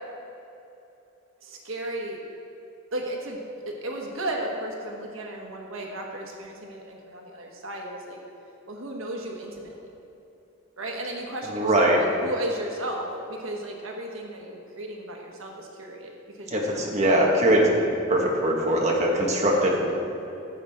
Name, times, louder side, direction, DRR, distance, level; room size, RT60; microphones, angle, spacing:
voice 1, 1.4-2.2 2.9-3.4 3.6-8.2 8.7-9.9 10.8-16.9, right 1 dB, 85° right, 0 dB, 1.3 m, -34 dB
voice 2, 11.5-12.0 16.5-17.7 18.1-19.9, right 1 dB, 35° right, -2 dB, 1.4 m, -21 dB
15.0 x 7.4 x 3.6 m, 3.0 s
head